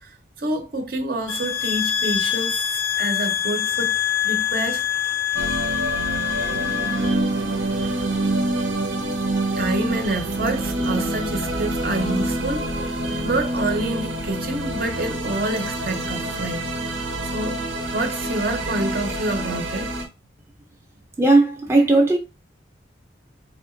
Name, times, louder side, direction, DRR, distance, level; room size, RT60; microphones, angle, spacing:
voice 1, 0.0-4.8 9.5-16.7 17.2-17.6 17.9-19.9, right 2 dB, 50° right, 0.7 m, -28 dB
sound 1, 1.3-7.1, left 10 dB, 80° left, 0.5 m, -24 dB
sound 2, 5.3-20.1, right 1 dB, 85° right, 0.8 m, -26 dB
voice 2, 21.2-22.2, right 2 dB, 15° right, 0.5 m, -16 dB
3.6 x 2.8 x 2.5 m
head